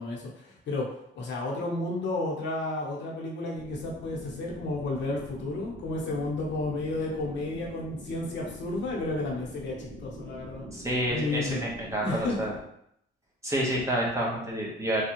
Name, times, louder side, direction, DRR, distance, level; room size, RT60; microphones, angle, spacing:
voice 1, 0.0-10.7 11.1-11.6 12.0-12.5, left 2 dB, 65° left, -2 dB, 0.9 m, -32 dB
sound 1, 3.5-12.6, equal, 55° right, 1.1 m, -44 dB
voice 2, 10.7-12.5 13.4-15.0, right 1 dB, 15° right, -4 dB, 1.0 m, -29 dB
3.4 x 2.3 x 2.9 m, 0.74 s
cardioid pair, 90°, 20 cm